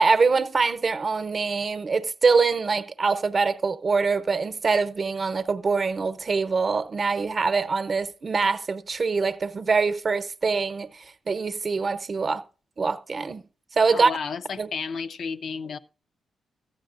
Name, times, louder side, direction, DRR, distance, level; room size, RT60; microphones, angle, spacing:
voice 1, 0.0-12.4 12.8-13.4 13.7-14.1 14.6-14.7, right 4 dB, 50° right, 0.8 m, -24 dB
voice 2, 13.9-15.8, left 5 dB, 65° left, 0.6 m, -32 dB
14.5 x 10.0 x 2.5 m
supercardioid pair, 50°, 0 cm